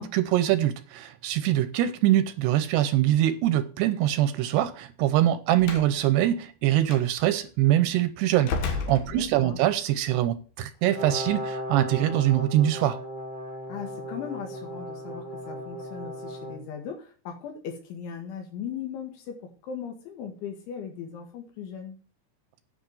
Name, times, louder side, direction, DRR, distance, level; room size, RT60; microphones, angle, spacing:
voice 1, 0.0-13.0, right 13 dB, 80° right, 2.6 m, -23 dB
Slam, 5.6-5.9 6.9-7.0 8.4-9.7, left 5 dB, 65° left, 3.0 m, -32 dB
voice 2, 9.1-9.6 13.7-22.0, left 7 dB, 85° left, 4.2 m, -38 dB
Brass instrument, 10.8-16.6, equal, 20° right, 1.4 m, -36 dB
10.0 x 6.0 x 7.7 m
omnidirectional pair, 5.3 m